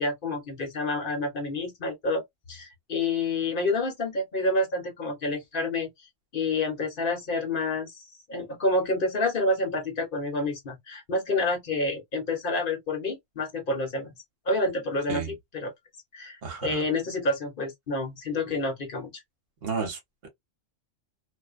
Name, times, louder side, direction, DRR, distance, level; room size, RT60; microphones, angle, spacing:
voice 1, 0.0-2.2 2.5-5.9 6.3-14.1 14.5-15.7 16.1-19.2, left 2 dB, 45° left, 1.1 m, -28 dB
voice 2, 16.4-16.8 19.6-20.3, right 5 dB, 50° right, 1.1 m, -32 dB
2.5 x 2.2 x 2.3 m
omnidirectional pair, 1.3 m